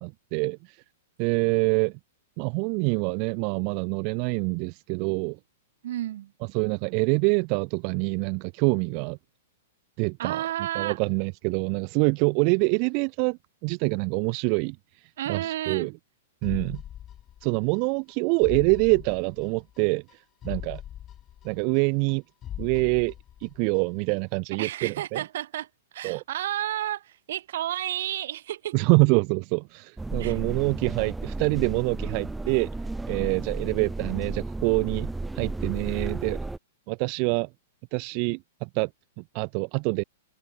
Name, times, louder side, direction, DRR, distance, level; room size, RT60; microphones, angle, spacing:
voice 1, 0.0-0.8 1.2-1.9 2.4-5.4 6.5-9.2 10.0-10.5 10.7-15.9 16.4-16.8 17.4-20.8 21.4-22.2 22.6-23.1 23.4-25.2 26.0-26.2 28.7-32.7 33.1-36.4 36.9-37.5 37.9-38.9 39.2-40.0, right 39 dB, 45° right, 1.1 m, -26 dB
voice 2, 5.8-6.3 10.2-11.0 15.2-15.9 24.6-25.7 25.9-28.8 30.2-30.4, right 12 dB, 65° right, 3.4 m, -31 dB
sound 1, 16.4-17.8 18.1-18.2 18.4-19.8 20.1-20.2 20.4-22.1 22.4-23.8 24.1-24.2, left 11 dB, 30° left, 4.8 m, -40 dB
sound 2, 30.0-36.6, right 2 dB, 5° right, 1.5 m, -33 dB
hypercardioid pair, 120°, 0 cm